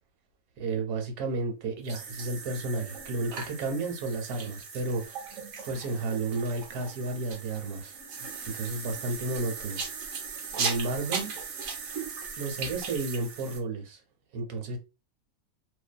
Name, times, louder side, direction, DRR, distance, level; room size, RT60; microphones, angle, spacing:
voice 1, 0.6-5.3 5.7-8.0 8.5-9.8 10.5-11.3 12.3-14.0 14.3-14.8, right 3 dB, 85° right, 1.2 m, -32 dB
sound 1, 1.9-13.6, right 5 dB, 70° right, 0.9 m, -38 dB
2.6 x 2.4 x 2.2 m
omnidirectional pair, 1.6 m